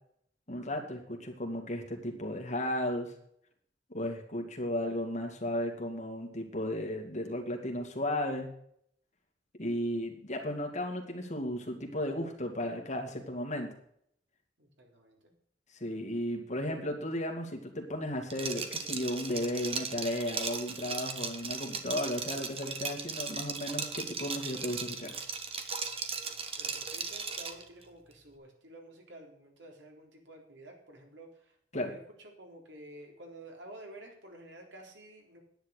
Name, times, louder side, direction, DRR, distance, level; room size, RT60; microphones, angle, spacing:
voice 1, 0.5-3.1 3.9-8.5 9.6-13.7 15.8-25.1 31.7-31.9, left 1 dB, 40° left, 3 dB, 2.3 m, -34 dB
voice 2, 14.6-15.3 26.6-35.4, right 1 dB, 75° right, 1 dB, 3.8 m, -51 dB
Liquid, 18.3-27.6, right 5 dB, 35° right, 1.3 m, -37 dB
10.5 x 9.8 x 6.6 m, 0.67 s
head